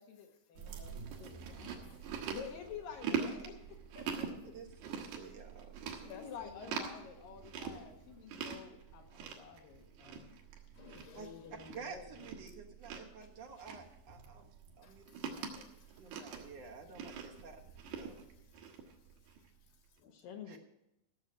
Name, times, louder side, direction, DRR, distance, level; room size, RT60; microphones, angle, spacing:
voice 1, 0.0-4.5 6.0-10.4 11.0-12.3 20.1-20.6, left 7 dB, 75° left, 4 dB, 2.4 m, -50 dB
Chewing mastication, 0.6-19.5, right 6 dB, 80° right, 3.5 m, -44 dB
voice 2, 4.5-6.1 11.1-11.3 11.7-14.5 14.8-15.1 15.5-15.6 15.9-17.6 17.9-18.2 20.5-20.6, right 5 dB, 60° right, 0 dB, 1.8 m, -51 dB
voice 3, 6.1-6.7 10.7-11.5 14.1-14.5 14.8-16.0 16.4-16.5 18.1-18.2 19.6-20.2, left 6 dB, 90° left, 3 dB, 4.0 m, -57 dB
15.0 x 7.2 x 6.3 m, 0.89 s
omnidirectional pair, 4.5 m